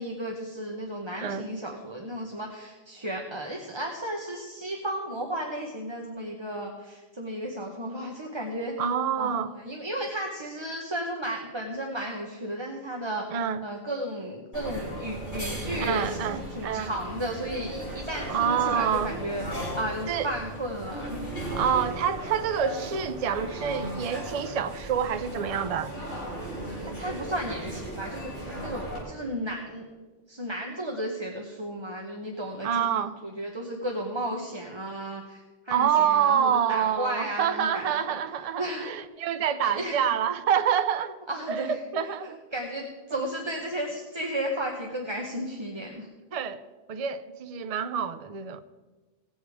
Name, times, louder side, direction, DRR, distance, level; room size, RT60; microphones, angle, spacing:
voice 1, 0.0-8.8 9.2-13.3 13.6-19.4 19.8-21.3 26.6-29.9 30.3-32.9 33.2-38.2 38.6-38.9 39.6-40.0 41.3-41.8 42.2-46.1, right 1 dB, 25° right, 1.1 m, -34 dB
voice 2, 8.8-9.5 13.3-13.6 15.8-16.9 18.3-19.1 20.1-20.3 21.6-25.9 32.6-33.2 35.7-41.2 41.5-42.4 46.3-46.6 46.9-48.6, right 8 dB, 45° right, 0.6 m, -27 dB
sound 1, 14.5-29.0, right 1 dB, 50° left, 4.1 m, -36 dB
18.0 x 7.3 x 4.8 m
omnidirectional pair, 1.1 m